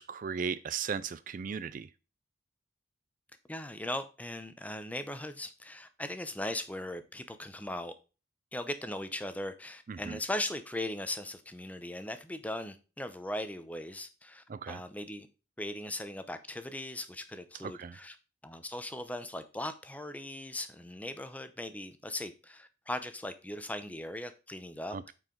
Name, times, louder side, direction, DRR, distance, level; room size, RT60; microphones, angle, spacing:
voice 1, 0.0-1.9 9.9-10.2 14.5-14.8 17.6-18.0 24.9-25.1, right 6 dB, 45° right, 0.4 m, -37 dB
voice 2, 3.5-7.9 8.5-15.3 15.6-18.2 18.4-25.1, left 1 dB, 10° left, 0.7 m, -39 dB
8.9 x 4.8 x 3.9 m
head